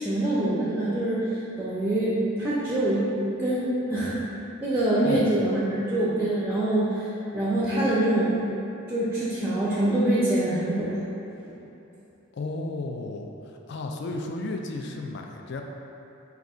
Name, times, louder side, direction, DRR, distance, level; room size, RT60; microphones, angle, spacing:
voice 1, 0.0-4.2 4.6-7.0 7.3-8.4 8.9-11.0, right 1 dB, 10° right, -9 dB, 0.5 m, -25 dB
voice 2, 12.3-13.3 13.7-15.6, left 3 dB, 55° left, 2 dB, 0.3 m, -32 dB
4.5 x 2.4 x 3.8 m, 2.9 s
head